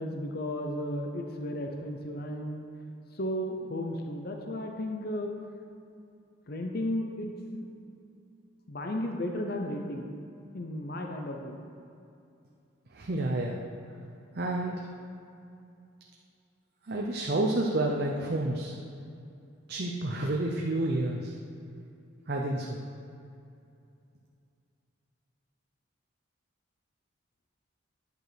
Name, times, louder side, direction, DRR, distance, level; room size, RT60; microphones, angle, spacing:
voice 1, 0.0-2.6 3.1-5.3 6.5-7.7 8.7-10.1 10.5-11.6, left 1 dB, 50° left, 3 dB, 0.8 m, -34 dB
voice 2, 12.9-13.6 14.3-14.9 16.9-18.8 19.7-21.3 22.3-22.9, right 2 dB, 50° right, 0 dB, 0.7 m, -29 dB
10.5 x 6.4 x 5.1 m, 2.6 s
head